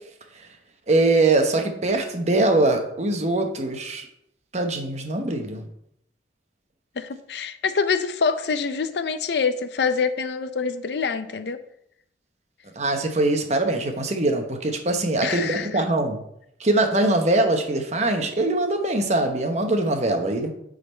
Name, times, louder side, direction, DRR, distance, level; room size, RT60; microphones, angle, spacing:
voice 1, 0.9-4.1 4.5-5.6 12.8-16.2 16.6-20.5, right 2 dB, 40° right, 5 dB, 0.9 m, -22 dB
voice 2, 7.0-11.6 15.2-15.8, left 5 dB, 70° left, 10 dB, 0.5 m, -25 dB
8.3 x 3.9 x 4.3 m, 0.74 s
head